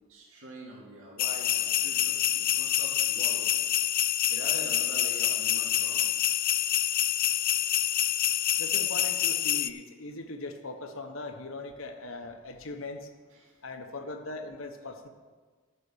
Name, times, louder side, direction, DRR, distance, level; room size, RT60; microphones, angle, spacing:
voice 1, 0.1-3.5 4.3-6.1 13.3-13.6, right 1 dB, 75° right, -3 dB, 2.4 m, -44 dB
sound 1, 1.2-9.7, left 12 dB, 45° left, 0.4 m, -27 dB
voice 2, 8.6-13.1 13.6-15.1, left 2 dB, 70° left, 5 dB, 1.1 m, -40 dB
11.5 x 6.0 x 6.9 m, 1.4 s
head